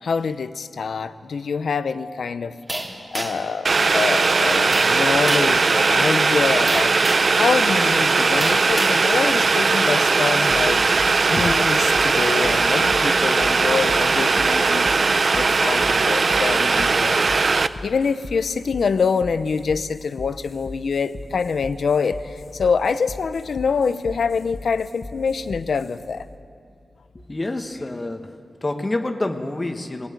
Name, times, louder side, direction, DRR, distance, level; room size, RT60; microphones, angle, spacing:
voice 1, 0.0-2.6 3.1-6.9 7.3-10.9 11.3-14.9 15.3-17.4 17.8-26.3, left 5 dB, 75° left, 12 dB, 0.7 m, -25 dB
sound 1, 2.7-3.5 4.7-5.0 5.3-5.6 6.7-7.4 8.4-9.0, right 1 dB, 20° right, 2.7 m, -28 dB
Boiling, 3.6-17.7, right 4 dB, 45° right, 0.5 m, -19 dB
sound 2, 10.5-27.5, left 2 dB, 55° left, 1.0 m, -40 dB
voice 2, 27.3-28.3 28.6-30.1, left 2 dB, 20° left, 6 dB, 1.1 m, -27 dB
20.0 x 18.0 x 9.5 m, 2.4 s
wide cardioid pair, 150°, 0 cm